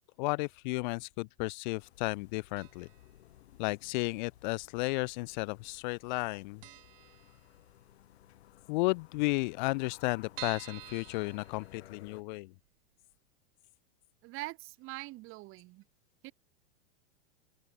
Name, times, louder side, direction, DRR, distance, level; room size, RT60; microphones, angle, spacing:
voice 1, 0.2-2.9 3.6-6.6 8.7-12.5, left 25 dB, 45° left, 0.5 m, -33 dB
sound 1, 1.8-12.2, left 14 dB, 70° left, 5.4 m, -58 dB
sound 2, 2.6-3.1 3.3-3.4 4.4-5.1 5.4-5.5 5.8-5.9 6.3-6.4 6.6-7.9 8.3-8.4 8.7-8.8 9.0-9.1 9.6-12.2 12.6-12.7 13.1-13.2, right 19 dB, 60° right, 1.5 m, -49 dB
voice 2, 14.2-15.8 16.2-16.3, right 20 dB, 40° right, 4.5 m, -43 dB
open air
supercardioid pair, 135°, 33 cm